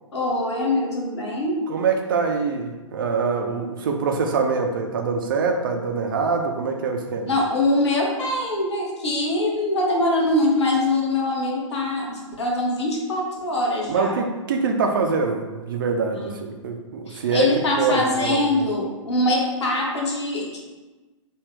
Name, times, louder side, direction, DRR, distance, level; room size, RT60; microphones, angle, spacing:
voice 1, 0.1-1.6 7.3-14.2 16.1-16.4 17.1-20.6, left 1 dB, 55° left, -1 dB, 0.9 m, -23 dB
voice 2, 1.7-7.3 13.9-17.5 17.8-18.6, right 4 dB, 40° right, 3 dB, 0.4 m, -24 dB
3.4 x 2.2 x 3.3 m, 1.2 s
figure-of-eight pair, 120°, 17 cm